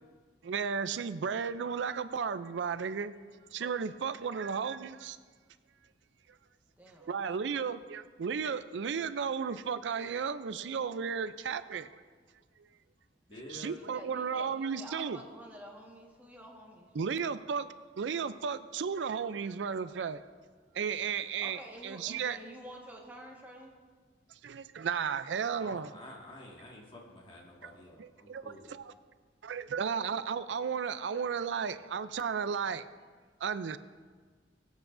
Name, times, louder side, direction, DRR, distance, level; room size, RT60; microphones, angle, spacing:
voice 1, 0.4-3.1 3.5-5.2 7.0-12.0 13.5-15.2 17.0-17.7 18.0-20.2 20.7-22.4 24.4-25.9 27.6-27.7 28.0-28.8 29.4-32.8 33.4-33.8, right 6 dB, 85° right, 13 dB, 0.4 m, -34 dB
voice 2, 6.8-7.2 13.7-17.1 21.4-23.7, equal, 10° right, -1 dB, 1.5 m, -49 dB
voice 3, 13.3-13.8 25.6-28.7, left 1 dB, 30° left, -2 dB, 1.8 m, -49 dB
21.0 x 8.3 x 2.6 m, 1.5 s
head